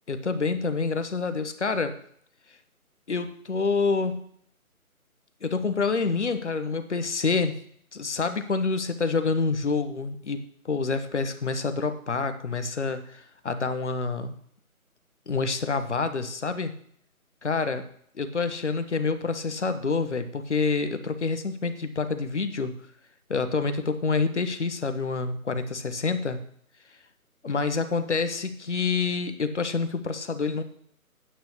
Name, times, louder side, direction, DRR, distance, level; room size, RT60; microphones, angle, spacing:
voice 1, 0.1-1.9 3.1-4.3 5.4-7.5 7.9-14.3 15.3-16.7 17.4-17.8 18.1-22.7 23.3-26.4 27.4-30.6, left 4 dB, 50° left, 10 dB, 1.2 m, -27 dB
9.2 x 5.8 x 8.3 m, 0.63 s
figure-of-eight pair, 155°, 43 cm